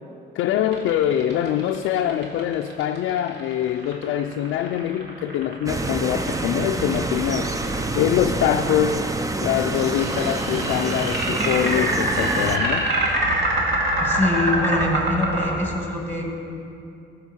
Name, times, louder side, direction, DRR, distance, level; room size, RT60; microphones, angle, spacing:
voice 1, 0.3-9.1 9.4-12.9, left 10 dB, 80° left, 5 dB, 0.4 m, -24 dB
sound 1, 0.7-7.9 9.5-15.5, right 1 dB, 60° right, 2.2 m, -25 dB
sound 2, 5.7-12.6, right 2 dB, 15° right, 0.6 m, -27 dB
voice 2, 14.0-16.3, left 2 dB, 10° left, 1 dB, 2.1 m, -24 dB
14.5 x 5.3 x 6.2 m, 2.7 s
cardioid pair, 90°, 20 cm